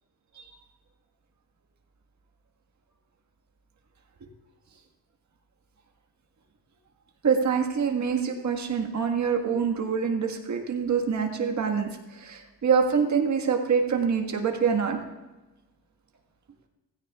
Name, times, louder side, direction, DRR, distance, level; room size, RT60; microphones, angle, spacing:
voice 1, 7.2-15.0, right 6 dB, 45° right, 3 dB, 1.7 m, -25 dB
17.0 x 15.5 x 2.4 m, 1.1 s
cardioid pair, 150°, 40 cm